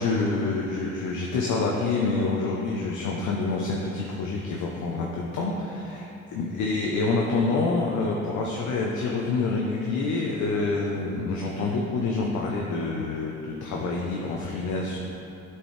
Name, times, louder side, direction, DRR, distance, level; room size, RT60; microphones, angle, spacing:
voice 1, 0.0-15.0, left 3 dB, 75° left, -2 dB, 0.8 m, -27 dB
9.7 x 4.5 x 3.3 m, 2.8 s
cardioid pair, 90°, 30 cm